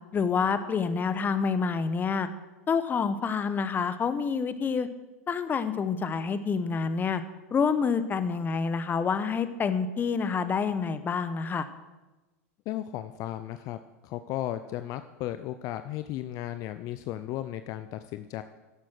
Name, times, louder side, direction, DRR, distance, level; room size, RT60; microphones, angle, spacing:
voice 1, 0.1-2.3 2.7-4.9 5.3-7.2 7.5-11.7, left 5 dB, 25° left, 12 dB, 0.9 m, -27 dB
voice 2, 12.7-13.8 14.0-18.4, left 13 dB, 45° left, 10 dB, 0.6 m, -35 dB
11.5 x 8.4 x 6.2 m, 1.1 s
hypercardioid pair, 105°, 8 cm